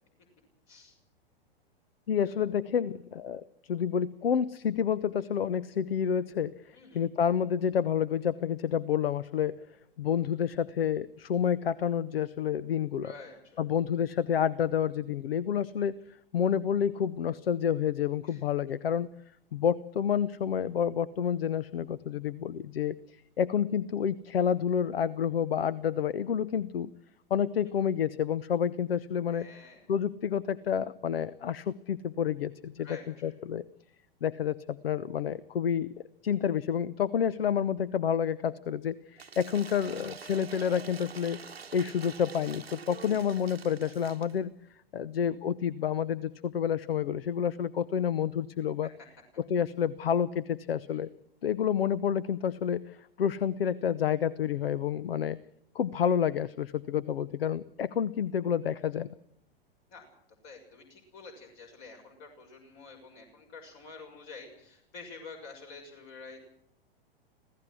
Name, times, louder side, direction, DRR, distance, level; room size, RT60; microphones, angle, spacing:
voice 1, 2.1-9.6 10.0-13.1 13.6-16.0 16.3-19.1 19.5-26.9 27.3-29.5 29.9-32.9 33.2-33.6 34.2-35.9 36.2-41.5 41.7-44.5 44.9-48.9 49.4-51.1 51.4-55.4 55.7-59.1, left 8 dB, 75° left, 20 dB, 0.9 m, -29 dB
voice 2, 13.0-13.6 18.2-18.4 29.3-29.9 32.8-33.3 48.8-48.9 50.9-51.0 59.9-60.1 60.4-66.4, left 4 dB, 45° left, 3 dB, 6.3 m, -48 dB
Cheering / Applause / Crowd, 39.2-44.4, right 6 dB, 90° right, 1.0 m, -46 dB
26.0 x 17.0 x 6.2 m, 0.73 s
figure-of-eight pair, 100°, 30 cm